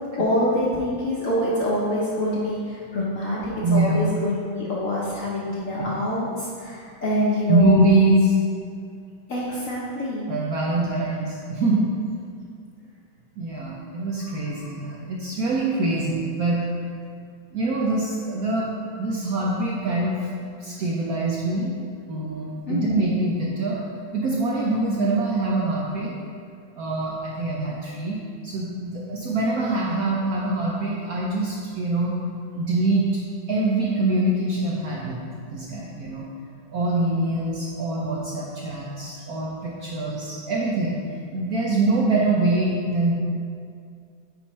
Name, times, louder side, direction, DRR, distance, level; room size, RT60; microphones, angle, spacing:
voice 1, 0.1-7.8 9.3-10.3 22.7-23.0, left 1 dB, 55° left, -6 dB, 1.0 m, -25 dB
voice 2, 3.6-4.0 5.8-5.9 7.5-8.4 10.3-11.9 13.4-16.7 17.5-18.7 19.0-20.3 20.6-21.7 22.1-23.8 24.1-26.1 26.7-28.2 28.4-32.1 32.5-33.1 33.5-35.2 35.5-36.3 36.7-43.1, right 2 dB, 70° right, -3 dB, 0.9 m, -24 dB
8.8 x 4.4 x 3.1 m, 2.3 s
omnidirectional pair, 2.3 m